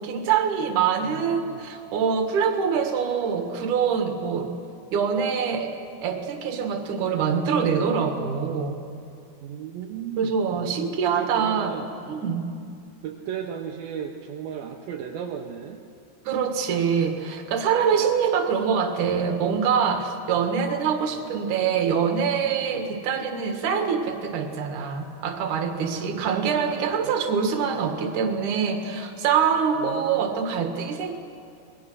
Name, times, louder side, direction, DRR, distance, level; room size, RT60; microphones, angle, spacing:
voice 1, 0.0-4.5 4.9-5.7 6.0-8.8 10.2-11.7 12.1-12.5 16.3-31.2, right 6 dB, 60° right, 5 dB, 3.0 m, -24 dB
voice 2, 1.0-1.6 9.4-11.9 13.0-15.8 20.4-20.5 25.9-26.5 27.0-27.1 29.8-30.4, right 8 dB, 75° right, 1 dB, 2.7 m, -36 dB
27.0 x 21.0 x 6.3 m, 2.4 s
omnidirectional pair, 4.3 m